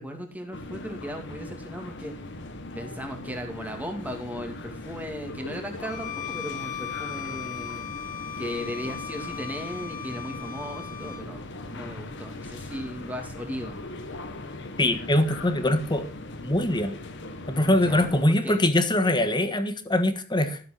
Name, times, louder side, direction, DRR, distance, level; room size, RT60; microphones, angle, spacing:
voice 1, 0.0-2.2 2.7-7.8 8.4-13.8 17.8-18.6, equal, 5° right, 4 dB, 2.5 m, -37 dB
sound 1, 0.5-18.2, left 2 dB, 60° left, 1.8 m, -39 dB
Bowed string instrument, 5.9-11.3, left 9 dB, 35° left, 1.9 m, -37 dB
voice 2, 14.8-16.1 16.4-16.9 17.5-20.6, left 1 dB, 20° left, 9 dB, 1.5 m, -23 dB
13.5 x 7.7 x 5.9 m, 0.37 s
head